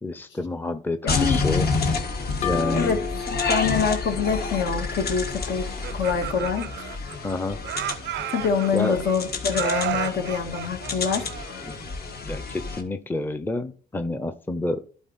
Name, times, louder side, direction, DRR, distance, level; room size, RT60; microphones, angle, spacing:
voice 1, 0.0-1.8 2.4-3.0 7.2-7.6 8.7-9.0 11.6-11.8 12.3-14.8, left 2 dB, 10° left, 10 dB, 0.7 m, -28 dB
voice 2, 1.0-1.4 2.5-5.7 5.9-6.7 8.3-11.3, left 6 dB, 70° left, 4 dB, 1.8 m, -25 dB
sound 1, 1.1-12.8, left 4 dB, 50° left, 1.6 m, -29 dB
sound 2, 2.4-6.0, left 6 dB, 35° left, 1.1 m, -34 dB
Laughter, 5.6-7.3 7.6-9.1 9.5-11.8, right 13 dB, 65° right, 0.4 m, -32 dB
11.5 x 4.2 x 4.1 m, 0.44 s
cardioid pair, 90°, 20 cm